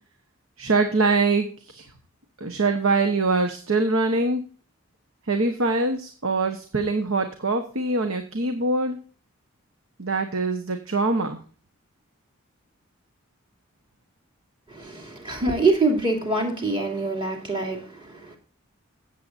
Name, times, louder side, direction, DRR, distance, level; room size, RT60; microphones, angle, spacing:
voice 1, 0.6-1.8 2.4-4.4 5.3-9.0 10.0-11.4, right 3 dB, 80° right, 6 dB, 1.2 m, -23 dB
voice 2, 14.7-18.4, right 3 dB, 25° right, 0 dB, 2.7 m, -25 dB
15.5 x 7.5 x 2.6 m, 0.40 s
head